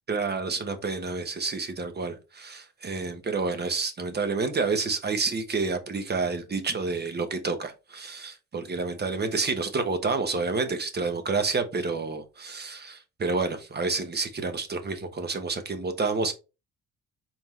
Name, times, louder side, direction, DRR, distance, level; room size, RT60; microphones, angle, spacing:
voice 1, 0.1-16.3, right 4 dB, 35° right, 1.0 m, -29 dB
4.5 x 3.6 x 3.2 m
cardioid pair, 90°, 30 cm